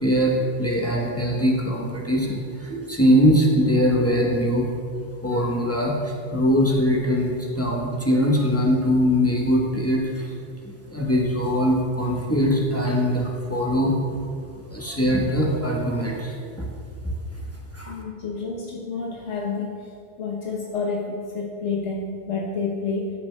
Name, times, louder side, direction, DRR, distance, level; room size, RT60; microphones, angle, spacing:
voice 1, 0.0-4.7 5.2-10.3 10.9-13.9 14.7-16.7 17.0-17.1 17.7-17.9, equal, 15° left, -3 dB, 0.7 m, -22 dB
voice 2, 17.9-19.7 20.2-23.1, left 4 dB, 75° left, -3 dB, 1.1 m, -29 dB
13.5 x 6.1 x 2.2 m, 2.4 s
omnidirectional pair, 1.2 m